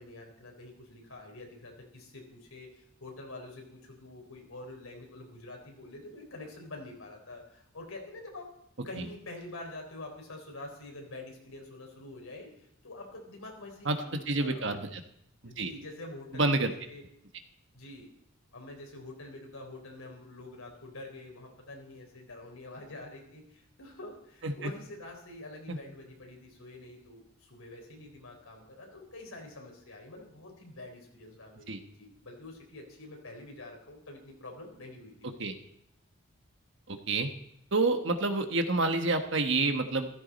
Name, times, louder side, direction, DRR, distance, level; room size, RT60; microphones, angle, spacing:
voice 1, 0.0-8.5 8.9-14.6 15.4-17.0 17.7-18.1 18.5-35.4, left 2 dB, 85° left, 1 dB, 4.1 m, -46 dB
voice 2, 14.3-15.0 15.6-15.7 16.3-16.7 24.4-24.7 25.7-25.8 31.7-31.8 35.4-35.5 36.9-37.3 37.7-40.1, right 3 dB, 60° right, 6 dB, 1.4 m, -28 dB
14.5 x 14.0 x 4.2 m, 0.75 s
head